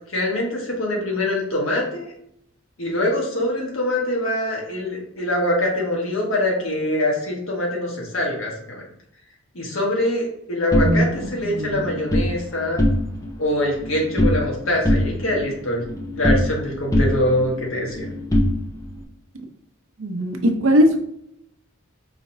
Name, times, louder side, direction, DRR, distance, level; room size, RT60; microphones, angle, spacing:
voice 1, 0.1-2.1 2.8-8.8 9.5-12.8 13.4-15.9 16.1-18.1, left 1 dB, 75° left, -2 dB, 1.4 m, -24 dB
sound 1, 10.7-12.3 12.7-13.3 13.6-14.5 14.8-16.6 16.9-19.0, equal, 15° left, 0.5 m, -22 dB
voice 2, 10.8-11.9 20.0-21.0, equal, 80° right, 4 dB, 0.7 m, -20 dB
4.9 x 3.0 x 2.7 m, 0.74 s
head